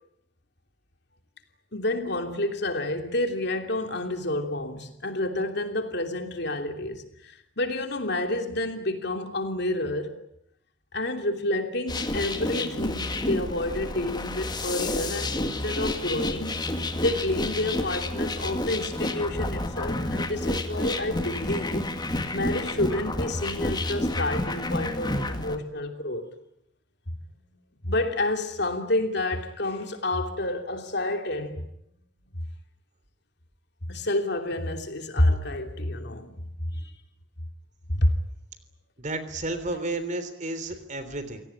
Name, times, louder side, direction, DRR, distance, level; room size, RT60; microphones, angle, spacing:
voice 1, 1.7-10.2 10.9-16.6 17.0-21.9 22.3-26.3 27.8-31.7 33.9-36.3 36.7-36.9 37.9-38.1, left 1 dB, 60° left, 3.1 m, -29 dB
sound 1, 11.9-25.6, left 1 dB, 20° left, 2.0 m, -30 dB
voice 2, 39.0-41.4, right 2 dB, 40° right, 3.4 m, -32 dB
27.5 x 18.0 x 9.9 m
head